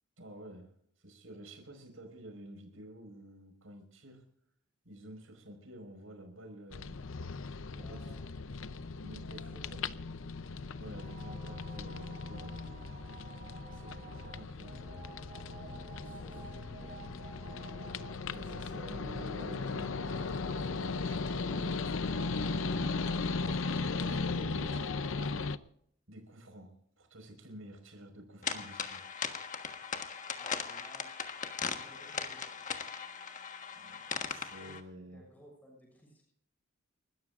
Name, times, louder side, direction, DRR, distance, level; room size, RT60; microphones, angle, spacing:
voice 1, 0.2-0.7 1.0-4.2 4.9-7.0 7.7-8.0 9.0-9.8 10.8-12.8 13.7-14.8 18.3-20.0 20.6-22.2 23.4-24.8 26.1-29.0 33.7-35.2, right 1 dB, 85° right, 5 dB, 5.2 m, -50 dB
sound 1, 6.7-25.6, left 4 dB, 70° left, 0.7 m, -37 dB
voice 2, 7.8-8.3 9.3-9.9 15.6-17.1 23.3-23.6 30.3-31.1 31.7-32.8 34.5-34.8 35.1-36.2, equal, 10° left, -2 dB, 6.8 m, -57 dB
sound 2, 10.9-25.5, right 2 dB, 35° right, 5.2 m, -50 dB
sound 3, 28.4-34.8, left 6 dB, 40° left, 1.4 m, -39 dB
30.0 x 13.5 x 2.5 m, 0.69 s
head